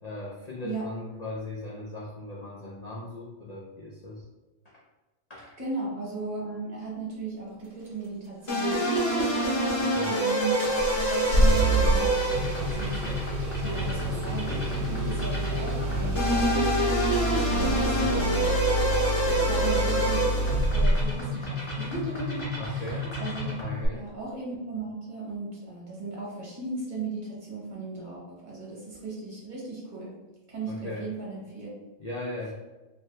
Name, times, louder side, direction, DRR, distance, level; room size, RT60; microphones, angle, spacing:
voice 1, 0.0-4.2 4.6-4.8 5.3-5.5 9.7-10.2 17.6-18.3 22.6-23.1 23.6-24.1 30.7-31.1 32.0-32.5, left 2 dB, 70° left, -5 dB, 0.4 m, -38 dB
voice 2, 5.6-13.2 13.6-16.7 17.5-18.5 19.3-20.4 20.7-23.5 23.9-30.1 30.5-31.7, right 3 dB, 35° right, -5 dB, 1.2 m, -36 dB
sound 1, 8.5-23.8, equal, 30° left, 0.8 m, -28 dB
Engine starting, 10.6-21.2 23.8-23.9, right 1 dB, 60° right, 1.0 m, -27 dB
2.8 x 2.8 x 3.2 m, 1.1 s
omnidirectional pair, 1.4 m